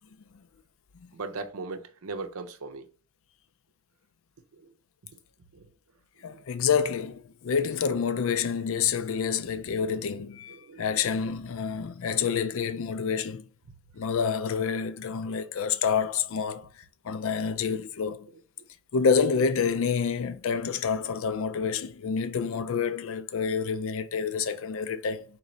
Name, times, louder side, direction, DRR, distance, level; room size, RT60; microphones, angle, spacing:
voice 1, 1.1-2.9 4.6-4.7 5.5-5.7 6.3-6.4 10.5-10.8, right 3 dB, 80° right, 0.6 m, -38 dB
voice 2, 6.2-13.5 13.9-16.7 17.0-18.3 18.9-25.2, left 6 dB, 65° left, 0.4 m, -28 dB
3.8 x 3.2 x 3.8 m
head